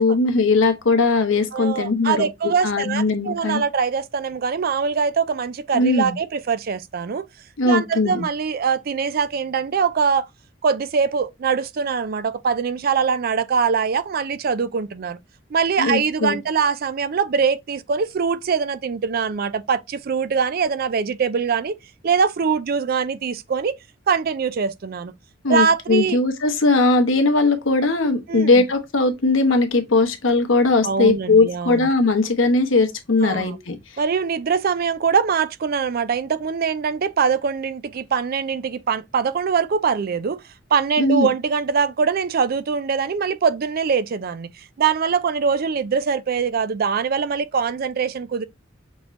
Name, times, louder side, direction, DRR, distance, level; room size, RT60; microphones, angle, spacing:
voice 1, 0.0-2.3 2.6-3.6 5.7-6.1 7.6-8.2 15.8-16.4 25.4-33.8 41.0-41.3, left 3 dB, 85° left, 1.0 m, -19 dB
voice 2, 1.5-7.3 7.6-10.3 10.6-15.2 15.5-21.8 22.0-23.8 24.1-25.1 25.5-26.2 28.3-28.6 30.8-31.9 33.2-33.6 34.0-40.4 40.7-48.5, right 6 dB, 50° right, 0.4 m, -23 dB
5.9 x 3.2 x 2.5 m
head